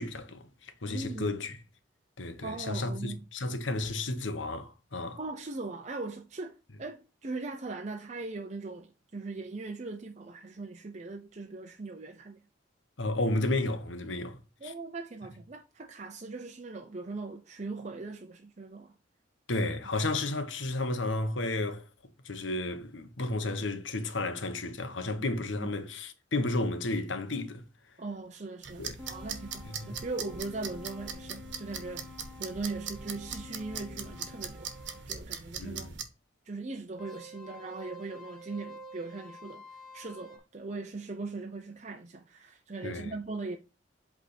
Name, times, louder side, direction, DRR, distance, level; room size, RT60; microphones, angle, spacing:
voice 1, 0.0-1.6 2.2-5.2 13.0-14.7 19.5-21.9 22.2-27.6 28.8-29.1 29.6-30.0 35.6-35.9 42.8-43.1, left 2 dB, 80° left, 1.2 m, -32 dB
voice 2, 0.9-1.4 2.4-3.2 5.2-12.4 14.6-18.9 19.6-19.7 25.6-25.7 28.0-34.7 35.1-36.0 36.5-39.6 39.9-43.6, right 3 dB, 35° right, 0.6 m, -40 dB
sound 1, 28.6-36.0, right 6 dB, 70° right, 1.2 m, -41 dB
sound 2, 29.0-35.1 37.0-40.4, left 1 dB, ahead, 2.0 m, -49 dB
8.2 x 3.6 x 4.2 m
head